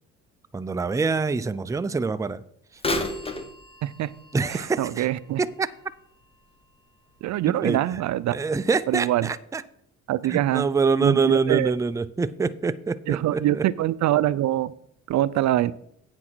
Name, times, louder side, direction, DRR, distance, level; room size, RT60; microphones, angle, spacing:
voice 1, 0.5-2.4 4.3-5.1 5.4-5.7 7.6-7.8 8.3-9.6 10.2-13.6, right 4 dB, 10° right, 0.4 m, -25 dB
Bird vocalization bird call bird song / Telephone, 2.8-6.6 7.1-7.2 8.0-8.1 8.8-8.9, left 2 dB, 20° left, 1.3 m, -34 dB
voice 2, 3.8-4.1 4.5-5.4 7.2-8.4 8.9-9.3 10.1-10.7 11.0-11.7 13.1-14.7 15.1-15.7, right 14 dB, 65° right, 0.5 m, -24 dB
8.8 x 6.0 x 6.1 m
cardioid pair, 90°, 30 cm